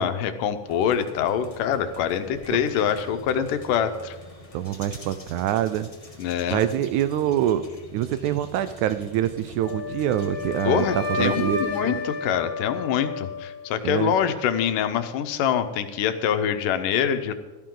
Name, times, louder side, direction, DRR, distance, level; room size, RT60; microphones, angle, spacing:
voice 1, 0.0-4.2 6.2-6.7 10.7-17.3, left 8 dB, 85° left, 9 dB, 2.5 m, -25 dB
sound 1, 0.7-11.7, left 2 dB, 65° left, 0.3 m, -45 dB
voice 2, 4.5-5.9 6.5-7.6 7.9-12.0 13.8-14.1, right 11 dB, 80° right, 12 dB, 1.8 m, -25 dB
Wind instrument woodwind instrument, 9.6-13.7, left 3 dB, 40° left, 1.4 m, -31 dB
16.5 x 13.5 x 3.8 m, 1.2 s
omnidirectional pair, 3.7 m